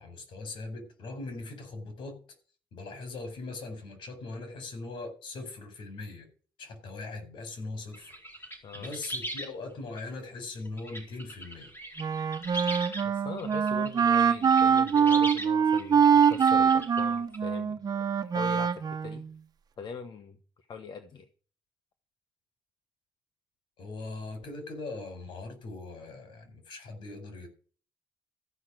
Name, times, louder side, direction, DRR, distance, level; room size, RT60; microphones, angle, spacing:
voice 1, 0.0-2.2 2.7-6.3 6.6-8.1 8.7-11.7 23.8-27.5, left 3 dB, 90° left, 4.6 m, -40 dB
sound 1, 7.9-9.5 10.0-10.1 10.7-13.0 13.4-17.4, right 1 dB, 30° left, 4.4 m, -40 dB
Wind instrument woodwind instrument, 12.0-19.3, right 7 dB, 50° right, 1.1 m, -24 dB
voice 2, 13.0-17.8 18.2-19.2 19.8-21.3, left 5 dB, 70° left, 1.3 m, -41 dB
14.0 x 6.0 x 7.7 m
cardioid pair, 90°, 8 cm